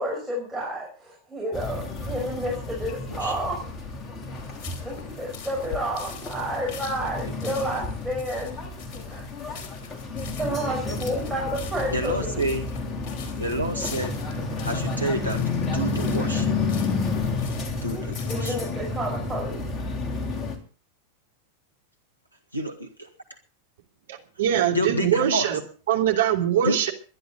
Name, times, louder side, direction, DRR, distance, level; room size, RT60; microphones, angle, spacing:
voice 1, 0.0-3.6 4.8-9.6 10.4-12.3 18.3-19.6, equal, 5° right, -3 dB, 6.0 m, -30 dB
sound 1, 1.5-20.6, left 3 dB, 25° left, 3.3 m, -31 dB
sound 2, 4.3-18.5, left 7 dB, 45° left, 3.9 m, -44 dB
voice 2, 11.9-12.7 13.4-14.1 14.6-16.5 17.8-18.6 22.5-22.7 24.5-25.5 26.6-26.8, right 1 dB, 90° right, 2 dB, 1.8 m, -28 dB
voice 3, 24.1-25.6 25.9-26.9, right 10 dB, 60° right, 3 dB, 3.0 m, -23 dB
22.5 x 11.0 x 4.0 m, 0.38 s
figure-of-eight pair, 90°, 0 cm